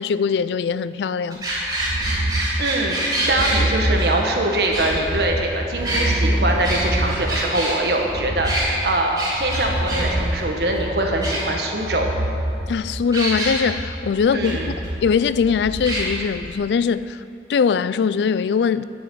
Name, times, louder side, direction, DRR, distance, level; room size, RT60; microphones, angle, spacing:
voice 1, 0.0-1.4 12.7-14.7 15.0-17.2 17.5-18.8, left 6 dB, 80° left, 0.3 m, -21 dB
sound 1, 1.3-3.6 4.0-4.1 4.7-5.4 5.8-7.7 8.4-8.7 9.2-10.0 10.4-10.5 10.7-10.8 11.2-11.8 13.1-13.5 14.4-14.5 14.8-14.9 15.8-16.0, right 1 dB, 20° right, 3.1 m, -26 dB
sound 2, 1.5-16.5, right 1 dB, 40° right, 0.9 m, -27 dB
voice 2, 2.6-12.1 14.3-14.7, right 1 dB, 70° right, 1.4 m, -23 dB
10.0 x 6.9 x 8.0 m
head